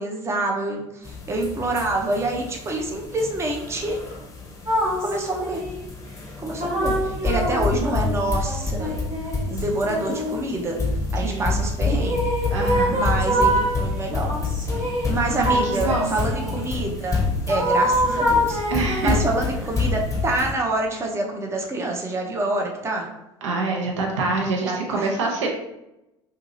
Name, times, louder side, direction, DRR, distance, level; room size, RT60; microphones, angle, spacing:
voice 1, 0.0-4.0 5.0-5.6 6.4-9.0 9.5-10.8 11.1-12.2 12.9-14.3 14.6-18.6 19.0-23.1 24.6-25.1, right 2 dB, 15° right, 1 dB, 0.6 m, -27 dB
sound 1, 1.0-20.5, left 3 dB, 20° left, 0.7 m, -28 dB
sound 2, 4.7-5.8 6.6-10.9 12.0-13.8 14.3-16.6 17.5-19.3, equal, 35° right, 1.2 m, -25 dB
voice 2, 12.5-13.0 15.4-16.1 18.7-19.2 23.4-25.5, right 3 dB, 70° right, 0 dB, 0.6 m, -25 dB
2.8 x 2.6 x 2.6 m, 0.90 s
figure-of-eight pair, 65°, 16 cm